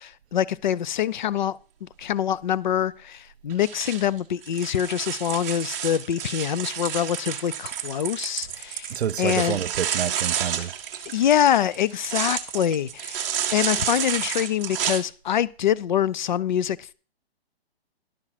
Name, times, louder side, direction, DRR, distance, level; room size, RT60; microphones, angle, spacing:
voice 1, 0.0-9.6 11.1-13.3 13.5-16.9, left 10 dB, 50° left, 0.5 m, -25 dB
sound 1, 3.5-15.0, right 9 dB, 15° right, 0.7 m, -30 dB
voice 2, 8.9-10.7, right 9 dB, 85° right, 0.7 m, -28 dB
11.0 x 6.0 x 5.8 m
hypercardioid pair, 170°, 31 cm